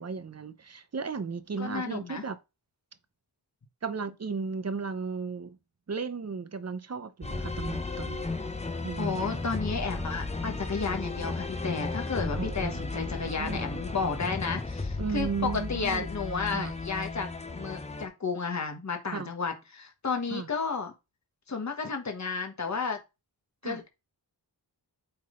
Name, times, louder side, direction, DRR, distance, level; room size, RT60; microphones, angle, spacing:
voice 1, 0.0-2.4 3.8-5.6 5.9-8.3 8.8-9.2 12.3-13.6 15.0-16.1 16.5-16.7 19.1-19.3 20.3-20.5 23.6-23.8, right 5 dB, 35° right, 0.8 m, -35 dB
voice 2, 1.6-2.2 9.0-20.9 21.5-23.0 23.6-23.9, left 4 dB, 40° left, 1.4 m, -32 dB
sound 1, 7.2-18.1, left 3 dB, 15° left, 0.8 m, -34 dB
8.7 x 3.9 x 3.8 m
wide cardioid pair, 95°, 42 cm